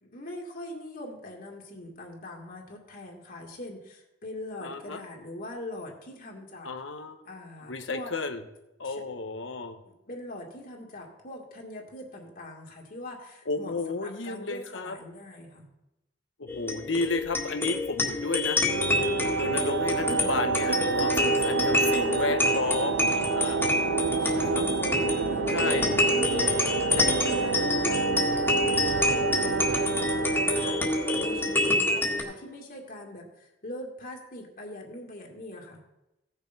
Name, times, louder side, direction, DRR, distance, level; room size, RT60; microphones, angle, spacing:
voice 1, 0.0-6.7 7.2-8.1 8.8-9.0 9.8-15.7 20.1-20.3 24.2-35.8, left 1 dB, 50° left, -1 dB, 2.3 m, -41 dB
voice 2, 4.6-5.0 6.6-7.2 7.7-8.4 8.8-9.8 13.5-15.0 16.4-18.6 19.4-23.6 24.3-24.6 25.5-25.9, left 3 dB, 75° left, 7 dB, 1.1 m, -32 dB
sound 1, 16.5-32.2, left 2 dB, 10° left, 1.8 m, -27 dB
sound 2, 18.7-32.3, right 5 dB, 85° right, 0.5 m, -29 dB
16.0 x 6.8 x 5.4 m, 0.93 s
head